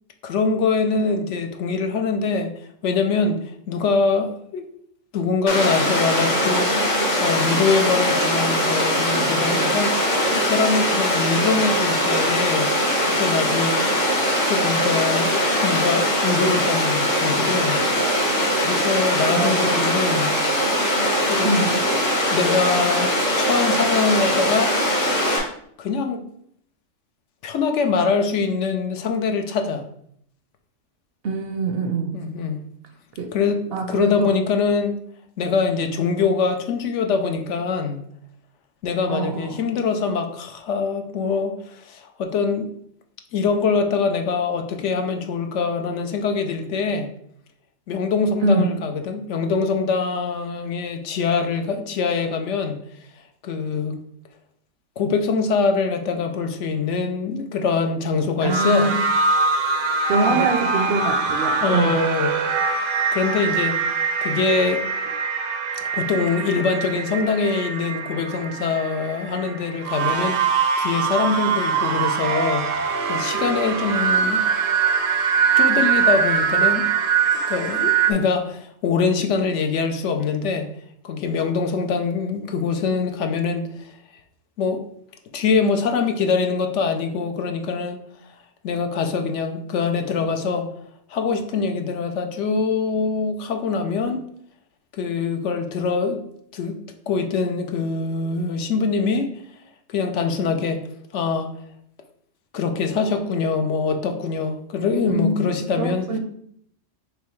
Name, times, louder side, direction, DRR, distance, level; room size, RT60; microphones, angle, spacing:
voice 1, 0.2-2.5 2.8-4.6 5.1-6.7 7.2-10.0 10.4-12.7 13.1-13.8 14.5-17.8 18.6-20.3 21.2-21.6 22.3-24.7 25.8-26.2 27.4-29.8 32.1-32.6 33.3-35.0 35.4-38.0 38.8-42.7 43.3-47.1 47.9-52.8 53.4-54.0 55.0-58.9 60.3-60.5 61.6-63.8 64.2-64.8 65.7-72.7 73.1-74.4 75.6-76.9 77.5-80.7 81.0-84.0 84.6-84.8 85.3-88.0 88.6-90.7 91.1-94.2 95.0-96.2 96.5-96.8 97.1-99.3 99.9-100.8 101.1-101.5 102.5-106.1, left 5 dB, 75° left, 6 dB, 0.9 m, -23 dB
Water, 5.5-25.4, equal, 55° left, 1.4 m, -21 dB
voice 2, 19.3-19.8 21.4-21.8 31.2-32.2 33.2-33.3 33.7-34.3 39.1-39.6 48.4-48.8 58.4-59.0 60.1-62.1 105.2-105.4 105.7-106.2, right 3 dB, 65° right, 5 dB, 0.7 m, -24 dB
sound 1, 58.5-78.1, right 5 dB, 90° right, 1.0 m, -22 dB
5.2 x 3.2 x 3.1 m, 0.68 s
omnidirectional pair, 1.3 m